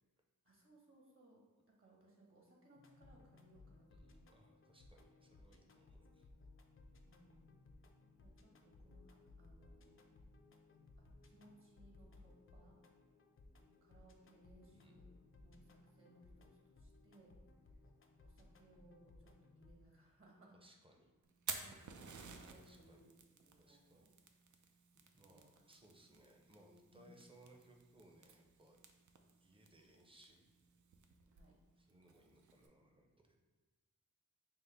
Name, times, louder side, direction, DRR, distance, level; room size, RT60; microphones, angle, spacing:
voice 1, 0.4-4.4 7.0-7.5 8.2-10.0 11.0-12.8 13.5-17.4 18.2-20.6 21.6-23.0 23.4-24.1 25.2-25.5 26.9-27.2 31.3-31.6, right 1 dB, 40° right, -3 dB, 1.1 m, -66 dB
sound 1, 2.7-19.7, left 2 dB, 40° left, 0.4 m, -63 dB
voice 2, 3.9-6.3 14.7-15.0 20.5-21.1 22.6-23.2 23.6-24.1 24.7-24.8 25.1-28.8 29.4-30.5 31.8-33.4, right 1 dB, 15° right, 1 dB, 0.6 m, -66 dB
Fire, 21.2-32.7, right 5 dB, 65° right, 0.4 m, -54 dB
5.4 x 2.0 x 3.4 m, 1.3 s
wide cardioid pair, 80°, 32 cm